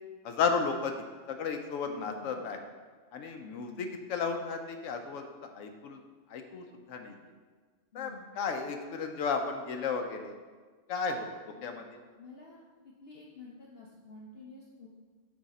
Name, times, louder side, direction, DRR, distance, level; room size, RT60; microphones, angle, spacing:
voice 1, 0.2-0.9 1.3-2.6 3.1-6.0 6.3-7.2 7.9-10.4 10.9-11.3 11.6-11.9, left 5 dB, 80° left, 4 dB, 1.0 m, -33 dB
voice 2, 1.9-2.5 3.4-4.1 7.9-8.3 11.6-11.8 12.2-14.9, left 4 dB, 55° left, -3 dB, 0.8 m, -50 dB
6.1 x 4.7 x 4.1 m, 1.5 s
omnidirectional pair, 1.3 m